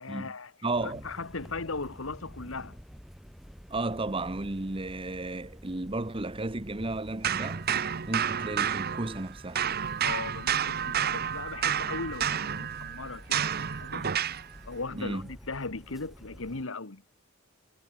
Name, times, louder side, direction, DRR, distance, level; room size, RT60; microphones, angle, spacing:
voice 1, 0.0-0.5 0.8-2.8 10.0-14.4 14.6-17.0, left 3 dB, 70° left, 1.5 m, -38 dB
voice 2, 0.6-1.0 3.7-7.7 8.1-9.6 14.9-15.3, right 2 dB, 25° right, 1.1 m, -33 dB
sound 1, 0.7-16.6, equal, ahead, 2.6 m, -49 dB
sound 2, 7.2-9.3 9.5-14.5, right 8 dB, 45° right, 0.8 m, -30 dB
head